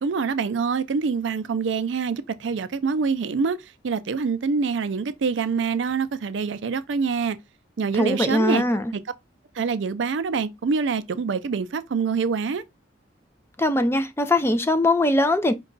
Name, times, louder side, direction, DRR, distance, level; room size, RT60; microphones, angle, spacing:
voice 1, 0.0-3.6 3.8-7.4 7.8-8.6 8.9-9.1 9.6-12.6, right 5 dB, 75° right, 0.4 m, -25 dB
voice 2, 7.9-8.8 13.6-15.5, left 1 dB, 15° left, 0.5 m, -21 dB
5.3 x 2.3 x 3.8 m
head